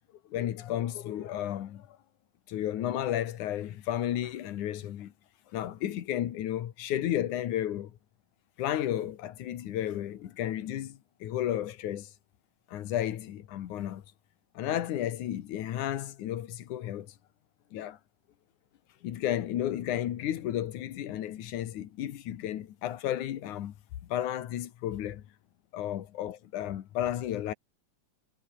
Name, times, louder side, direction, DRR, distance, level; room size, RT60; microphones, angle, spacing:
voice 1, 0.3-2.0 2.5-5.1 5.5-7.9 8.6-12.1 12.7-14.0 14.5-17.1 17.7-18.0 19.0-23.7 24.1-25.2 25.7-27.5, left 12 dB, 85° left, 2.9 m, -33 dB
omnidirectional pair, 3.4 m